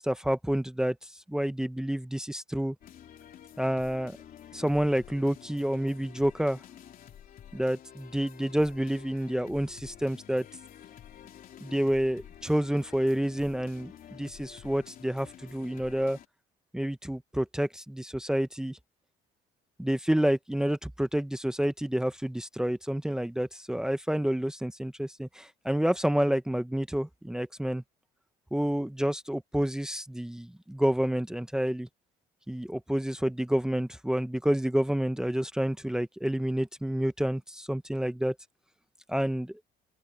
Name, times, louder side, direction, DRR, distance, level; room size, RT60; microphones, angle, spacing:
voice 1, 0.0-2.7 3.6-4.2 4.5-6.6 7.5-10.4 11.6-16.2 16.7-18.8 19.8-27.8 28.5-31.9 32.5-38.3 39.1-39.6, equal, 5° right, 0.9 m, -29 dB
sound 1, 2.8-16.3, left 10 dB, 55° left, 3.4 m, -50 dB
cardioid pair, 110°, 17 cm